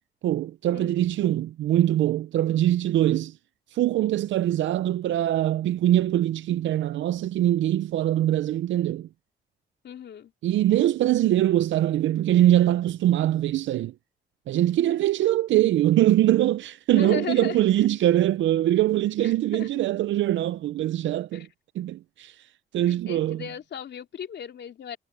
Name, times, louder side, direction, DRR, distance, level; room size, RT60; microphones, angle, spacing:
voice 1, 0.2-3.4 3.7-9.1 10.4-13.9 14.5-21.5 21.8-22.5 22.7-23.4, right 13 dB, 70° right, 0.6 m, -23 dB
voice 2, 9.8-10.3 14.8-14.9 15.2-15.4 16.9-17.6 19.5-19.7 21.3-21.5 22.9-25.0, left 9 dB, 60° left, 2.9 m, -36 dB
cardioid pair, 90°, 20 cm